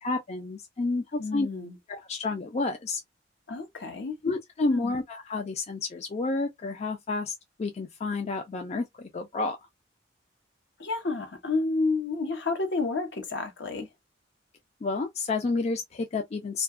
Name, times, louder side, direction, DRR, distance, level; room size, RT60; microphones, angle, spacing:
voice 1, 0.0-1.5 1.9-3.0 4.2-7.3 7.6-9.6 14.8-16.6, left 3 dB, 35° left, 0.4 m, -30 dB
voice 2, 1.2-1.8 3.5-4.2 4.7-5.0 10.8-13.9, left 3 dB, 65° left, 0.8 m, -30 dB
2.7 x 2.3 x 2.3 m
head